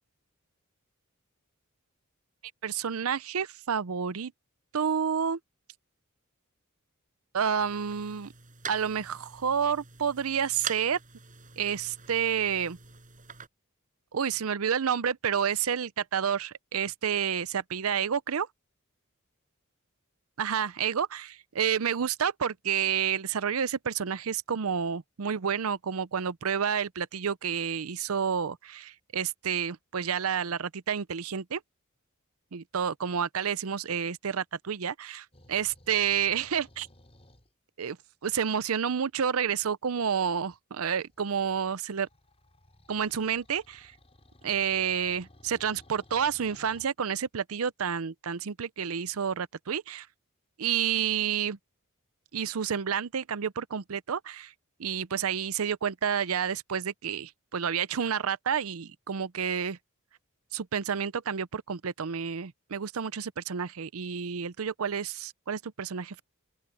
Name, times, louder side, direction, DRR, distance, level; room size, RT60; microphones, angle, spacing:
voice 1, 2.6-4.3 4.7-5.4 7.3-8.3 8.7-11.0 11.6-12.8 14.1-18.5 20.4-31.6 32.5-36.9 37.8-38.0 38.2-42.1 42.9-43.9 44.4-50.1 50.6-51.6 52.3-54.5 54.8-59.8 60.5-66.2, right 7 dB, 85° right, 0.6 m, -30 dB
sound 1, 7.6-13.5, right 7 dB, 40° right, 6.3 m, -44 dB
sound 2, 35.3-37.5 40.8-46.9, left 1 dB, 30° left, 7.1 m, -57 dB
open air
head